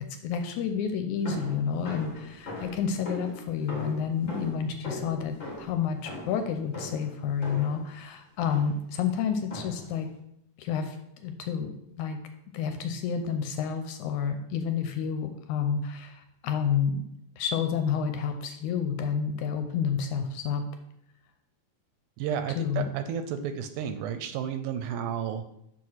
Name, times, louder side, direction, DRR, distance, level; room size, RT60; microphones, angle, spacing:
voice 1, 0.2-10.1 10.6-11.7 12.0-12.2 12.5-17.1 17.4-20.6 22.6-22.9, left 7 dB, 80° left, 7 dB, 1.8 m, -30 dB
sound 1, 1.2-7.9 8.4-8.9 9.5-10.0, left 1 dB, 55° left, 0.8 m, -40 dB
voice 2, 22.2-25.5, right 8 dB, 80° right, 8 dB, 1.9 m, -32 dB
6.1 x 4.8 x 5.6 m, 0.80 s
omnidirectional pair, 3.7 m